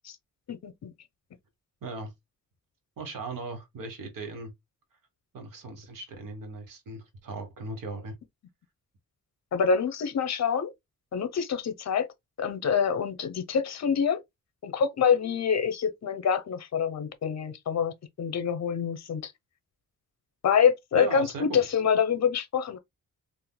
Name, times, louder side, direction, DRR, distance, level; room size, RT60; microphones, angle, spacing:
voice 1, 0.5-0.9 9.5-10.7 11.1-12.1 12.4-14.2 14.6-19.3 20.4-22.8, left 7 dB, 50° left, 0.8 m, -26 dB
voice 2, 1.8-2.1 3.0-4.5 5.3-8.1 20.9-21.6, right 3 dB, 75° right, 1.4 m, -38 dB
3.8 x 2.6 x 2.2 m
cardioid pair, 115°, 33 cm